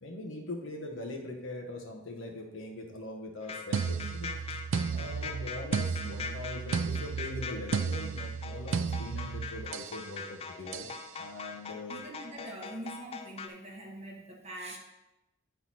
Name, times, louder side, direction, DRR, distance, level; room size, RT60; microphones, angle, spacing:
voice 1, 0.0-4.3 4.9-10.9 11.2-12.1, left 2 dB, 70° left, 0 dB, 1.2 m, -41 dB
sound 1, 3.4-13.5, left 5 dB, 30° left, 0.4 m, -42 dB
sound 2, 3.7-10.0 10.7-11.0, right 5 dB, 70° right, 0.4 m, -34 dB
voice 2, 11.9-14.8, right 1 dB, 30° right, -1 dB, 1.1 m, -43 dB
9.2 x 4.1 x 4.2 m, 0.97 s
head